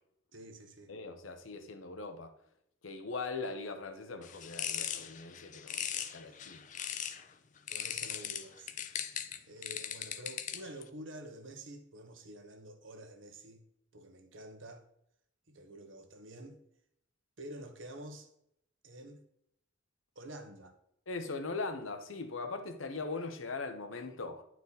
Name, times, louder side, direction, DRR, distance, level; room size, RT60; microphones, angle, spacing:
voice 1, 0.3-0.9 6.2-6.6 7.7-8.7 9.5-13.6 13.9-14.8 15.5-16.6 17.4-18.3 18.8-19.2 20.1-20.8, right 1 dB, 70° right, 1.1 m, -49 dB
voice 2, 0.9-2.3 2.8-6.7 21.1-24.4, left 3 dB, 90° left, 1.0 m, -40 dB
sound 1, 4.2-7.2 7.7-10.8, left 9 dB, 40° left, 0.5 m, -39 dB
9.9 x 4.5 x 4.1 m
head